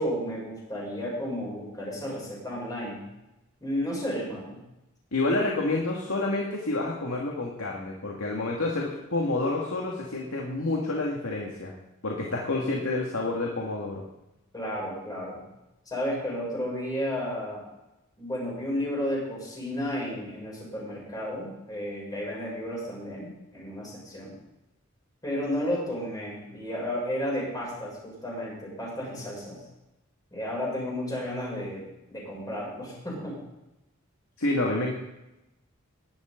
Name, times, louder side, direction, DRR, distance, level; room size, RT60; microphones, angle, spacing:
voice 1, 0.0-3.0 3.6-4.6 14.5-15.4 15.9-17.6 18.2-24.3 25.2-29.6 30.3-33.4, equal, 20° left, -5 dB, 6.9 m, -32 dB
voice 2, 5.1-11.7 12.0-14.0 34.4-35.0, left 2 dB, 85° left, -2 dB, 2.3 m, -28 dB
19.5 x 11.5 x 4.0 m, 0.94 s
head